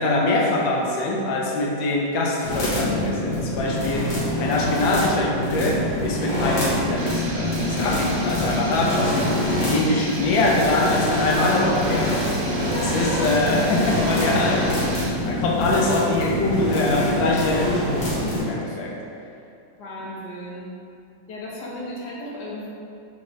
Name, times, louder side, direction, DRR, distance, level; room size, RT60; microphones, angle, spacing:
voice 1, 0.0-12.2 12.8-19.0, left 2 dB, 85° left, -1 dB, 1.3 m, -23 dB
sound 1, 2.4-18.4, left 1 dB, 45° left, 1.4 m, -25 dB
sound 2, 7.0-15.1, right 2 dB, 75° right, 1.2 m, -37 dB
voice 2, 12.6-13.3 14.2-14.7 19.8-20.7 21.3-22.7, left 1 dB, 65° left, -5 dB, 1.3 m, -35 dB
4.1 x 2.9 x 3.0 m, 2.6 s
omnidirectional pair, 2.0 m